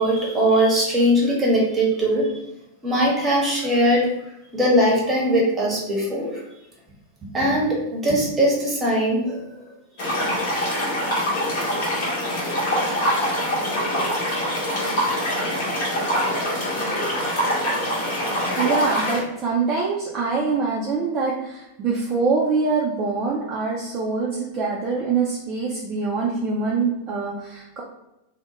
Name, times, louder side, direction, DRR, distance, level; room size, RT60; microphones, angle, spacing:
voice 1, 0.0-2.3 2.8-4.1 4.5-6.4 7.3-9.5 10.0-10.2 11.6-11.8, equal, 15° right, -4 dB, 0.8 m, -20 dB
sound 1, 10.0-19.2, equal, 50° left, 0.8 m, -24 dB
voice 2, 18.6-27.8, right 4 dB, 30° right, -4 dB, 0.4 m, -24 dB
2.2 x 2.0 x 2.9 m, 0.89 s
figure-of-eight pair, 90°, 0 cm